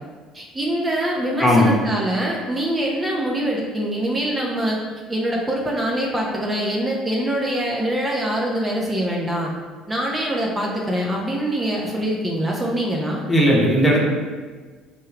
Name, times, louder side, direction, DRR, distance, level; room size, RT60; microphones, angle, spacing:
voice 1, 0.3-4.8 5.1-9.5 9.9-13.2, right 1 dB, 20° right, -2 dB, 0.6 m, -24 dB
voice 2, 1.4-1.7 13.3-14.0, equal, 20° left, -2 dB, 1.0 m, -16 dB
4.5 x 2.2 x 3.2 m, 1.4 s
hypercardioid pair, 60°, 0 cm